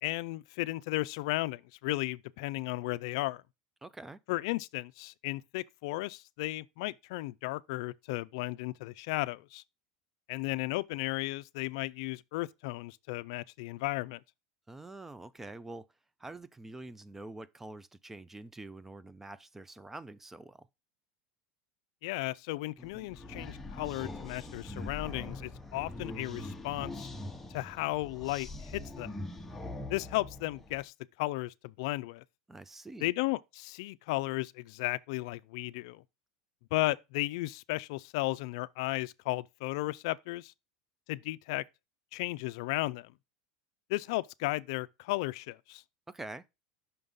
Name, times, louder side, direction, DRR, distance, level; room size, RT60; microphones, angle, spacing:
voice 1, 0.0-3.4 4.3-9.6 10.3-14.2 22.0-27.1 27.5-29.2 29.9-32.2 33.0-36.0 36.7-40.5 41.1-41.6 42.1-43.1 43.9-45.8, left 20 dB, 70° left, 0.4 m, -35 dB
voice 2, 3.8-4.2 14.7-15.9 16.2-20.7 32.5-33.1 46.1-46.4, right 2 dB, 10° right, 0.4 m, -46 dB
sound 1, 22.8-30.9, left 2 dB, 5° left, 0.9 m, -43 dB
5.8 x 3.5 x 5.5 m
supercardioid pair, 125°, 3 cm